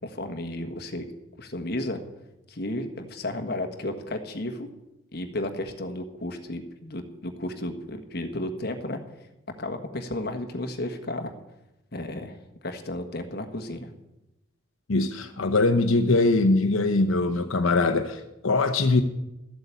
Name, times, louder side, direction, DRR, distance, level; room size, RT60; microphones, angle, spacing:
voice 1, 0.0-1.0 1.4-2.0 2.5-4.7 5.1-9.0 9.6-11.3 11.9-12.4 12.6-13.9, left 1 dB, 50° left, 5 dB, 1.4 m, -33 dB
voice 2, 14.9-19.0, left 3 dB, 80° left, 7 dB, 0.8 m, -22 dB
14.0 x 7.9 x 8.3 m, 0.94 s
head